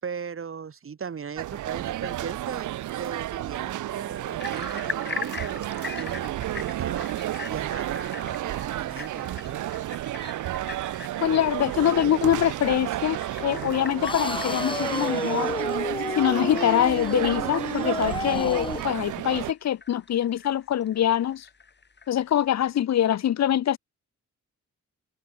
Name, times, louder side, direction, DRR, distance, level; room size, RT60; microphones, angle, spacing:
voice 1, 0.0-7.1 7.5-9.6, right 6 dB, 45° right, 5.6 m, -38 dB
sound 1, 1.4-19.5, right 14 dB, 80° right, 0.6 m, -31 dB
sound 2, 4.4-22.7, left 5 dB, 35° left, 4.6 m, -42 dB
voice 2, 11.2-15.5 16.1-21.5 22.1-23.8, left 11 dB, 60° left, 0.9 m, -24 dB
sound 3, 14.0-18.9, left 3 dB, 15° left, 1.2 m, -31 dB
cardioid pair, 125°, 30 cm